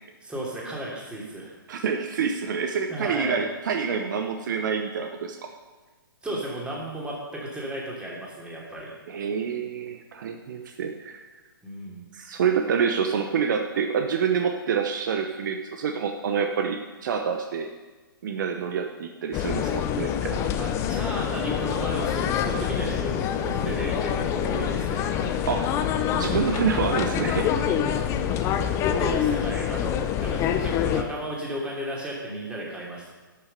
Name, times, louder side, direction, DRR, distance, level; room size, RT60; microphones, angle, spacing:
voice 1, 0.2-1.6 2.9-3.4 6.2-8.9 11.6-12.0 20.6-25.3 29.0-33.1, right 1 dB, 10° right, -4 dB, 3.1 m, -34 dB
voice 2, 1.7-5.4 9.1-11.3 12.1-17.7 18.2-20.5 25.4-25.7 26.1-27.5 28.4-28.5, right 6 dB, 55° right, 5 dB, 1.0 m, -27 dB
sound 1, 19.3-31.0, left 9 dB, 25° left, 0.7 m, -26 dB
sound 2, 22.6-28.9, left 4 dB, 65° left, 2.1 m, -39 dB
12.0 x 6.7 x 6.8 m, 1.3 s
hypercardioid pair, 135°, 12 cm